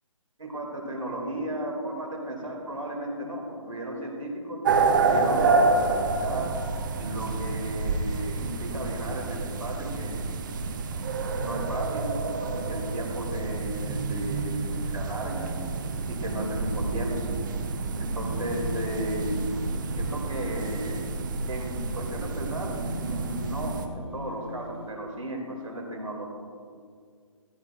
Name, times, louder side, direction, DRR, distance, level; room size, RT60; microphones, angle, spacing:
voice 1, 0.4-6.5 7.0-10.1 11.3-12.1 12.5-15.6 16.1-17.4 18.0-19.5 20.0-21.0 21.5-26.3, right 1 dB, 80° right, 0 dB, 2.5 m, -35 dB
sound 1, 4.6-23.9, right 3 dB, 35° right, 0.7 m, -29 dB
sound 2, 18.2-24.9, left 2 dB, 45° left, 1.0 m, -41 dB
14.0 x 12.0 x 2.5 m, 2.2 s
figure-of-eight pair, 140°, 17 cm